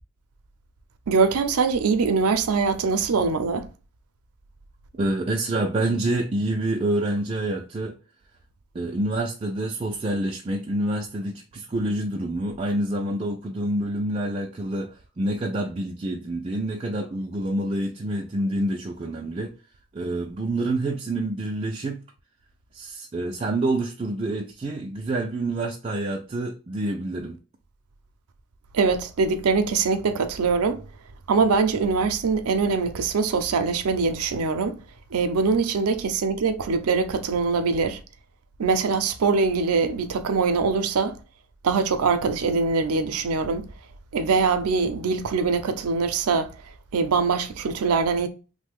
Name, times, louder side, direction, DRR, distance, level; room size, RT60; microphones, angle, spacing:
voice 1, 1.1-3.7 28.7-30.8 31.3-34.8 35.1-38.0 38.6-41.2 41.6-43.6 44.1-46.5 46.9-48.3, right 4 dB, 85° right, 0.5 m, -23 dB
voice 2, 5.0-8.0 8.7-19.5 19.9-22.0 22.7-27.4, right 1 dB, 25° right, 0.3 m, -27 dB
3.2 x 2.1 x 3.5 m
head